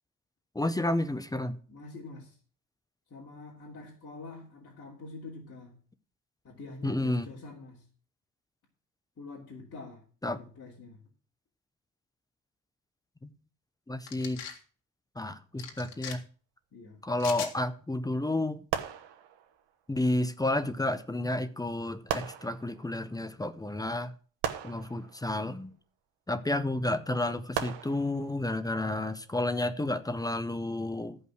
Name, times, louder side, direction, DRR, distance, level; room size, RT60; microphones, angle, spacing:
voice 1, 0.5-1.6 6.8-7.3 10.2-10.4 13.2-13.3 13.9-14.4 15.2-16.2 17.0-18.6 19.9-24.1 24.6-25.7 26.3-31.2, left 1 dB, 10° left, 0.5 m, -31 dB
voice 2, 1.7-2.4 3.1-5.8 6.4-7.9 9.2-10.0 10.4-11.0 16.7-17.0, left 3 dB, 35° left, 3.1 m, -46 dB
sound 1, 14.1-14.6 15.6-16.2 17.2-17.5, left 8 dB, 90° left, 2.0 m, -40 dB
sound 2, 18.7-19.7 21.0-21.1 22.1-23.1 24.4-25.7 27.5-28.6 29.3-29.6, right 9 dB, 80° right, 1.2 m, -37 dB
14.0 x 5.6 x 6.3 m
cardioid pair, 145°, 43 cm